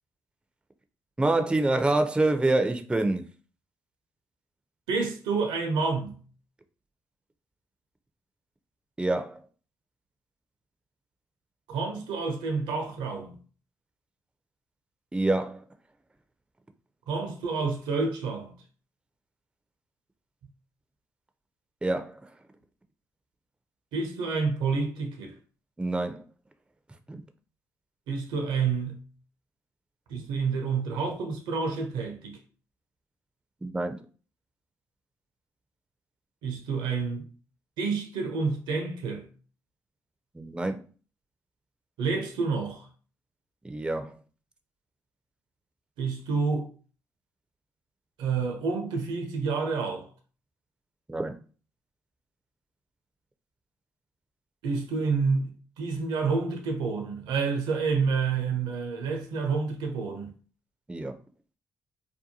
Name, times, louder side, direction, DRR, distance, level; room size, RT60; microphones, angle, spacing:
voice 1, 1.2-3.3 9.0-9.4 15.1-15.6 21.8-22.3 25.8-26.2 27.1-27.2 33.6-34.0 40.3-40.8 43.6-44.2 51.1-51.4 60.9-61.2, right 2 dB, 10° right, 0.4 m, -26 dB
voice 2, 4.9-6.2 11.7-13.4 17.1-18.5 23.9-25.3 28.1-29.0 30.1-32.4 36.4-37.2 37.8-39.3 42.0-42.9 46.0-46.7 48.2-50.1 54.6-55.5 55.8-60.3, right 4 dB, 75° right, 0.6 m, -29 dB
2.6 x 2.2 x 2.7 m
hypercardioid pair, 45°, 8 cm